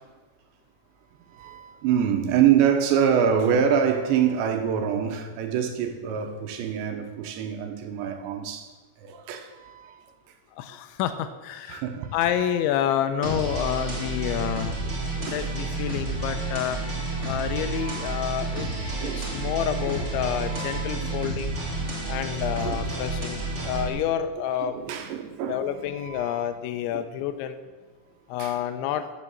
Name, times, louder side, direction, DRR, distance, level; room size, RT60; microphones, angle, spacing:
voice 1, 1.3-8.7 9.0-10.0 11.7-12.5 15.3-15.7 17.2-17.3 17.6-19.4 20.4-21.3 21.8-21.9 22.7-23.7 24.6-26.4 26.9-27.0 28.4-28.6, right 8 dB, 75° right, 3.3 m, -27 dB
voice 2, 10.6-11.8 12.1-14.7 15.2-16.8 17.2-18.7 19.0-21.6 22.1-24.7 25.5-27.6 28.3-29.1, left 10 dB, 85° left, 3.1 m, -28 dB
sound 1, 13.2-23.9, right 2 dB, 40° right, 1.0 m, -30 dB
13.5 x 7.6 x 7.2 m
omnidirectional pair, 5.3 m